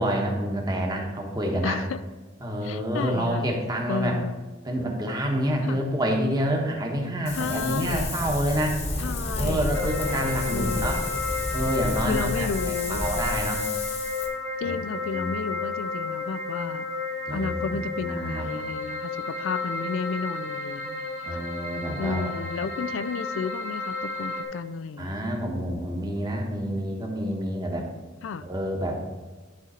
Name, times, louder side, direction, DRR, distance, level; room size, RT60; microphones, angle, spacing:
voice 1, 0.0-1.8 2.4-4.2 4.6-8.8 9.4-11.0 11.5-13.6 14.6-14.7 15.1-15.3 17.3-18.5 21.3-22.4 25.0-27.9 28.4-29.2, equal, 20° right, 1 dB, 1.1 m, -28 dB
voice 2, 1.6-2.0 2.6-3.5 3.9-4.3 5.6-5.8 7.3-8.2 9.0-10.0 10.5-11.0 12.1-13.0 14.6-16.9 17.3-21.4 22.0-25.2 28.2-28.4, left 5 dB, 75° left, 14 dB, 0.4 m, -32 dB
Wind, 7.3-14.3, left 2 dB, 35° left, 1.1 m, -31 dB
sound 1, 9.7-24.4, left 4 dB, 60° left, 1.1 m, -32 dB
11.0 x 3.8 x 4.3 m, 1.3 s
head